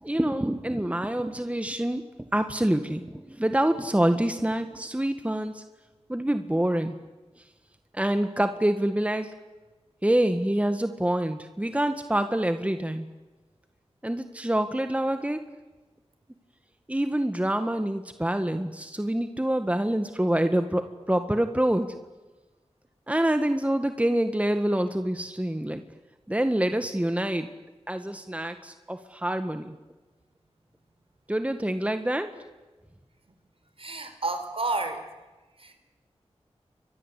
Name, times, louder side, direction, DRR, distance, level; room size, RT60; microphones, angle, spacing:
voice 1, 0.0-2.0 2.3-5.6 6.1-6.9 7.9-9.3 10.0-13.1 14.0-15.4 16.9-21.9 23.1-25.8 26.3-27.5 27.9-29.8 31.3-32.3, right 1 dB, 10° right, 8 dB, 1.7 m, -26 dB
voice 2, 33.8-35.0 35.6-35.8, right 2 dB, 60° right, 8 dB, 4.7 m, -30 dB
30.0 x 23.5 x 8.4 m, 1.2 s
wide cardioid pair, 55°, 11 cm